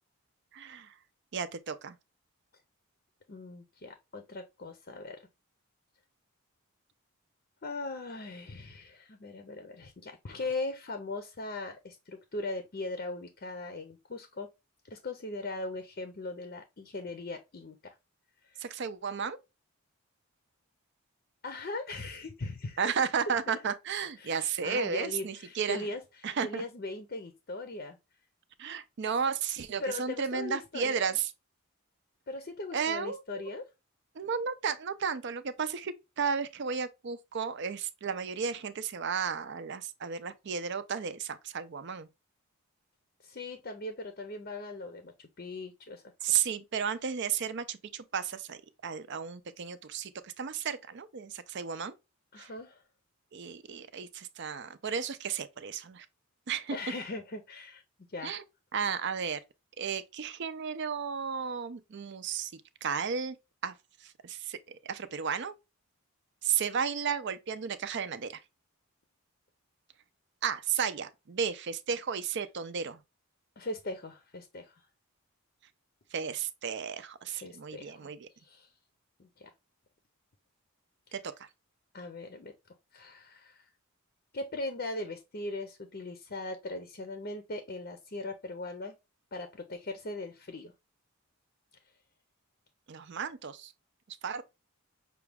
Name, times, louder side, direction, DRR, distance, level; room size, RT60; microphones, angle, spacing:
voice 1, 0.5-0.9 1.3-2.0 18.6-19.4 22.8-25.9 26.2-26.6 28.6-31.3 32.7-33.4 34.2-42.1 46.2-52.0 52.4-52.5 53.3-56.1 56.5-56.8 58.2-58.4 58.7-59.4 59.8-63.4 63.6-63.7 64.0-65.5 66.4-68.4 70.4-73.0 76.1-78.3 81.1-81.3 92.9-93.7 94.1-94.4, right 6 dB, 50° right, 0.4 m, -33 dB
voice 2, 3.3-5.2 7.6-14.5 14.9-17.8 18.5-18.7 21.4-22.8 24.2-28.0 29.8-31.1 32.3-33.7 43.2-46.0 46.3-46.4 52.3-52.8 56.7-57.8 58.1-58.4 73.6-74.7 77.3-78.1 78.4-78.7 79.2-79.5 81.1-81.2 81.9-82.5 82.9-83.7 84.3-89.0 89.3-90.7, left 2 dB, 45° left, 0.6 m, -39 dB
5.9 x 2.3 x 3.4 m
head